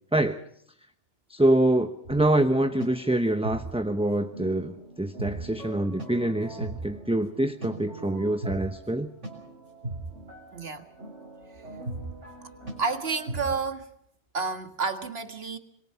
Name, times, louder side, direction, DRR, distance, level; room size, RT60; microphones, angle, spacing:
voice 1, 0.1-0.4 1.3-9.1, right 1 dB, 5° right, 7 dB, 0.9 m, -25 dB
sound 1, 2.0-13.5, right 2 dB, 85° right, 6.8 m, -40 dB
voice 2, 10.5-10.9 12.8-13.9 14.3-15.6, right 4 dB, 60° right, 7 dB, 2.0 m, -30 dB
26.0 x 22.5 x 5.7 m, 0.70 s
omnidirectional pair, 1.2 m